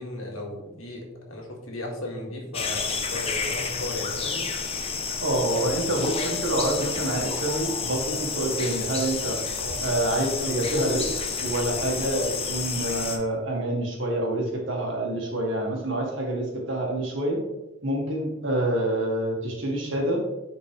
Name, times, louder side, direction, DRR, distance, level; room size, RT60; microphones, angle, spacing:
voice 1, 0.0-4.5 9.6-9.8, left 1 dB, 75° left, 0 dB, 1.9 m, -36 dB
Night valley jungle, 2.5-13.2, left 5 dB, 30° left, 0.7 m, -30 dB
voice 2, 5.2-9.4 9.8-11.1 11.4-17.4 17.8-20.2, right 1 dB, 60° right, -1 dB, 1.9 m, -27 dB
10.0 x 4.4 x 3.2 m, 0.98 s
head